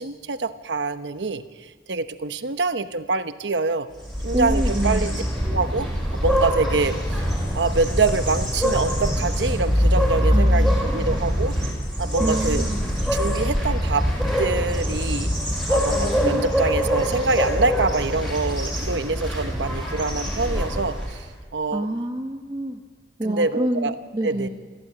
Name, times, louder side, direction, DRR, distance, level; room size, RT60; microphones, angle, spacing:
voice 1, 0.0-3.9 4.2-5.1 5.5-7.2 7.5-11.6 12.0-12.6 13.1-14.1 14.4-15.3 15.7-21.3 21.5-21.9 23.2-23.9 24.2-24.5, right 3 dB, 80° right, 10 dB, 1.0 m, -25 dB
sound 1, 4.0-21.3, equal, 5° left, 7.6 m, -23 dB
voice 2, 4.3-5.2 10.3-11.2 12.2-12.8 21.7-22.8 23.2-24.5, right 1 dB, 25° right, 2 dB, 1.2 m, -27 dB
22.5 x 15.0 x 8.7 m, 1.5 s
head